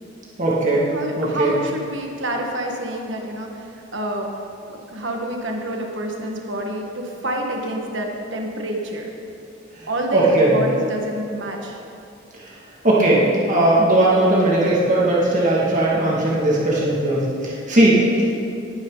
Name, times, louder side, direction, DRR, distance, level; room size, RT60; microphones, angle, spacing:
voice 1, 0.4-0.9 1.2-1.5 10.1-10.6 12.4-12.5 12.8-18.0, right 1 dB, 40° right, -6 dB, 2.3 m, -18 dB
voice 2, 0.9-4.3 4.7-9.1 9.9-11.8, right 1 dB, 65° right, 1 dB, 1.7 m, -28 dB
19.5 x 9.7 x 4.0 m, 2.6 s
head